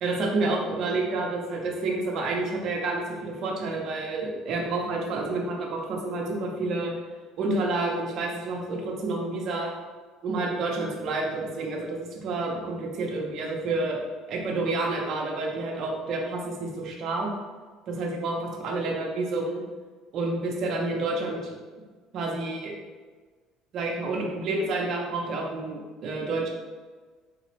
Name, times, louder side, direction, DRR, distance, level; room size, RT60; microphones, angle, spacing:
voice 1, 0.0-6.9 7.4-9.7 10.2-14.0 14.3-17.3 17.9-19.6 20.1-21.6 22.1-22.7 23.7-26.5, right 2 dB, 55° right, -1 dB, 0.8 m, -29 dB
4.1 x 2.3 x 3.1 m, 1.4 s
cardioid pair, 110°, 0 cm